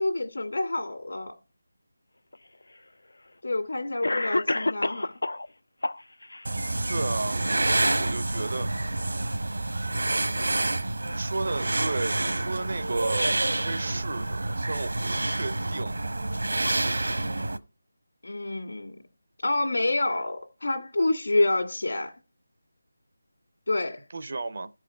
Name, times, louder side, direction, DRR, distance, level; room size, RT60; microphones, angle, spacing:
voice 1, 0.0-1.3 3.4-5.1 18.2-19.0 19.4-22.1 23.7-24.0, left 2 dB, 65° left, 1.8 m, -27 dB
Cough, 2.3-2.4 3.4-3.5 4.0-5.5 5.8-6.4, left 2 dB, 90° left, 0.4 m, -28 dB
sound 1, 6.4-17.6, right 2 dB, 70° right, 1.0 m, -28 dB
voice 2, 6.9-8.7 11.0-15.9 24.1-24.7, right 3 dB, 35° right, 0.5 m, -33 dB
14.0 x 4.9 x 5.3 m
figure-of-eight pair, 180°, 0 cm